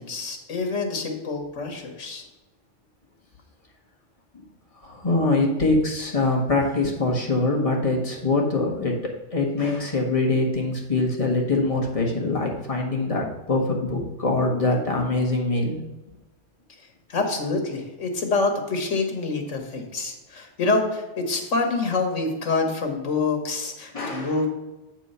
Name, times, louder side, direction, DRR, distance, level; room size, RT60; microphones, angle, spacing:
voice 1, 0.0-2.2 17.1-24.5, left 3 dB, 80° left, 4 dB, 1.7 m, -26 dB
voice 2, 4.8-9.0 9.3-15.8 23.9-24.4, left 2 dB, 30° left, -1 dB, 1.5 m, -23 dB
8.0 x 4.6 x 5.5 m, 1.1 s
omnidirectional pair, 1.3 m